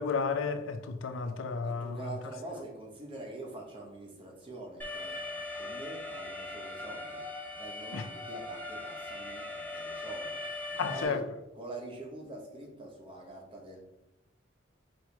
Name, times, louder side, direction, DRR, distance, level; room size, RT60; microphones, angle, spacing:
voice 1, 0.0-2.1 7.9-8.1 10.8-11.2, left 5 dB, 75° left, 0.4 m, -32 dB
voice 2, 1.6-7.2 7.5-10.4 10.7-11.2 11.6-13.8, right 2 dB, 25° right, 0.9 m, -45 dB
Alarm, 4.8-11.1, left 2 dB, 10° left, 0.6 m, -40 dB
4.4 x 2.9 x 3.3 m
head